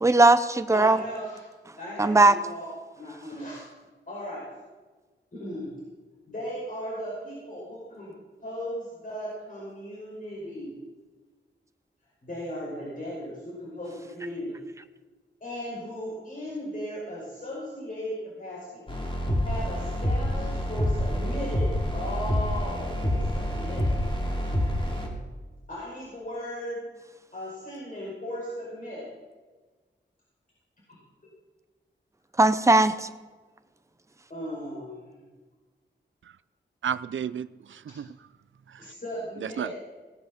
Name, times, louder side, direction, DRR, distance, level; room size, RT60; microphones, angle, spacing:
voice 1, 0.0-1.0 2.0-2.4 32.4-33.1, right 2 dB, 15° right, 10 dB, 0.7 m, -18 dB
voice 2, 0.7-1.4 1.8-2.7 3.0-3.6 4.1-4.4 5.3-5.7 6.3-10.8 12.2-14.6 15.4-18.8 19.4-23.9 25.7-26.8 27.3-29.0 30.9-31.0 34.3-35.3 38.8-39.7, equal, 45° left, -6 dB, 5.4 m, -37 dB
sound 1, 18.9-25.1, equal, 25° left, 2.6 m, -27 dB
voice 3, 36.8-38.1 38.7-38.8 39.4-39.7, right 8 dB, 85° right, 16 dB, 0.4 m, -32 dB
18.0 x 7.9 x 6.6 m, 1.3 s
wide cardioid pair, 110°, 19 cm